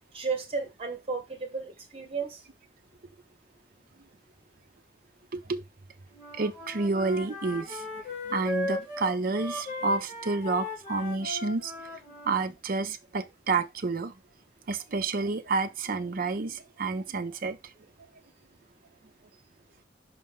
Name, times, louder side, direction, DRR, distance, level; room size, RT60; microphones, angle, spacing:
voice 1, 0.1-2.4, right 4 dB, 35° right, 1.6 m, -33 dB
Wind instrument woodwind instrument, 6.1-12.4, left 2 dB, 40° left, 2.7 m, -37 dB
voice 2, 6.3-7.9 8.3-11.7 12.2-14.1 14.7-17.6, right 3 dB, 55° right, 0.6 m, -29 dB
5.3 x 5.1 x 3.7 m
head